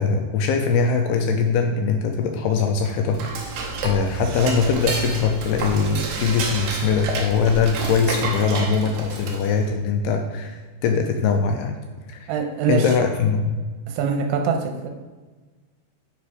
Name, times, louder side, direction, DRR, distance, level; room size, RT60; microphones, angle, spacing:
voice 1, 0.0-11.8 12.1-12.3 12.7-13.5, left 5 dB, 80° left, 4 dB, 2.4 m, -22 dB
Dishes pots and pans / Cutlery silverware, 2.8-9.7, right 3 dB, 70° right, 2.1 m, -30 dB
voice 2, 12.3-12.9 13.9-14.9, right 5 dB, 90° right, 4 dB, 3.2 m, -23 dB
9.9 x 4.2 x 4.9 m, 1.3 s
omnidirectional pair, 5.1 m